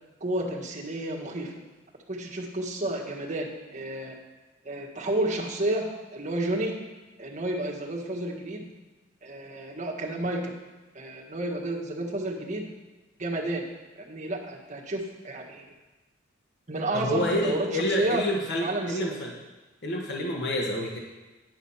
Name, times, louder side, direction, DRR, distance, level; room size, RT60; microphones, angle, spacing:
voice 1, 0.2-1.5 2.1-4.1 4.6-5.9 6.1-6.7 7.2-8.6 9.2-10.5 10.9-12.7 13.2-13.6 14.0-15.7 16.7-18.2 18.6-19.1, right 1 dB, 40° right, -2 dB, 1.6 m, -31 dB
voice 2, 16.9-19.3 19.8-21.0, left 1 dB, 60° left, 0 dB, 1.3 m, -28 dB
10.5 x 6.1 x 5.7 m, 1.2 s
head